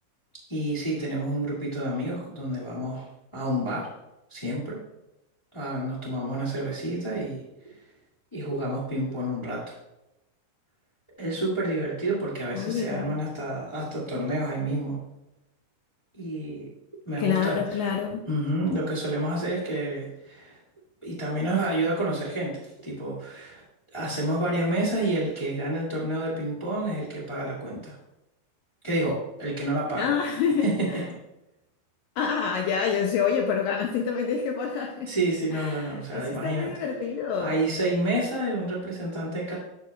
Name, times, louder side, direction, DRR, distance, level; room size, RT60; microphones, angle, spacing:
voice 1, 0.5-3.1 3.3-3.9 4.3-4.8 5.5-7.8 8.3-9.6 11.2-15.0 16.1-16.7 17.0-17.9 18.3-20.6 21.0-22.5 22.8-23.6 23.9-27.9 28.8-30.1 30.6-31.0 35.0-36.7 37.4-39.5, right 1 dB, 25° left, -7 dB, 0.6 m, -29 dB
voice 2, 12.5-13.2 17.2-18.2 30.0-31.0 32.2-35.1 35.5-37.6, left 6 dB, 85° left, 1 dB, 2.0 m, -27 dB
10.5 x 6.7 x 2.3 m, 0.93 s
omnidirectional pair, 4.6 m